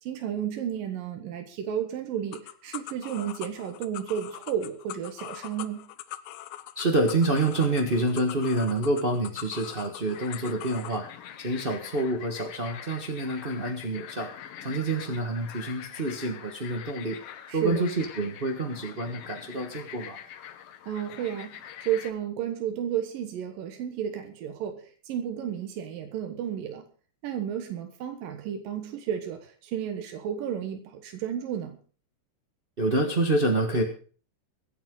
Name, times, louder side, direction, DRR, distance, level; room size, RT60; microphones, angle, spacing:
voice 1, 0.0-5.8 17.5-17.9 20.9-26.9 27.2-31.8, right 9 dB, 85° right, 5 dB, 3.0 m, -32 dB
sound 1, 2.3-11.0, left 14 dB, 90° left, 2.5 m, -42 dB
voice 2, 6.7-17.2 17.5-20.2 32.8-33.8, right 2 dB, 55° right, 2 dB, 0.6 m, -27 dB
sound 2, 10.1-22.1, left 10 dB, 65° left, 1.5 m, -44 dB
24.0 x 8.9 x 3.8 m, 0.41 s
omnidirectional pair, 3.8 m